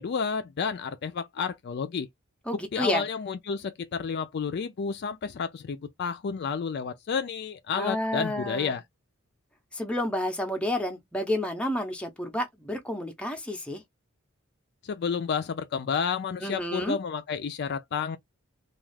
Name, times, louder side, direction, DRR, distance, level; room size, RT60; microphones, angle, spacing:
voice 1, 0.0-2.1 2.7-8.8 14.8-18.2, left 6 dB, 50° left, 0.4 m, -31 dB
voice 2, 2.5-3.0 7.7-8.8 9.7-13.8 16.4-17.0, left 1 dB, 5° left, 0.6 m, -30 dB
2.4 x 2.3 x 3.2 m
head